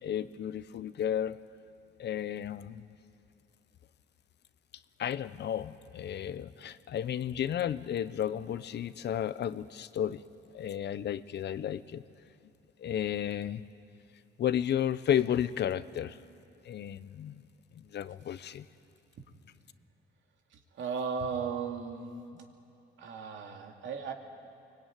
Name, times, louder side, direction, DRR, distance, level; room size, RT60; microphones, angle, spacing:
voice 1, 0.0-1.4 2.0-2.9 5.0-10.2 10.5-12.0 12.8-13.6 14.4-16.2 16.6-17.4 17.8-18.7, left 10 dB, 60° left, 15 dB, 0.8 m, -33 dB
voice 2, 20.8-22.4 23.0-24.1, right 5 dB, 75° right, 3 dB, 2.7 m, -36 dB
24.0 x 21.5 x 9.3 m, 2.6 s
cardioid pair, 90°, 20 cm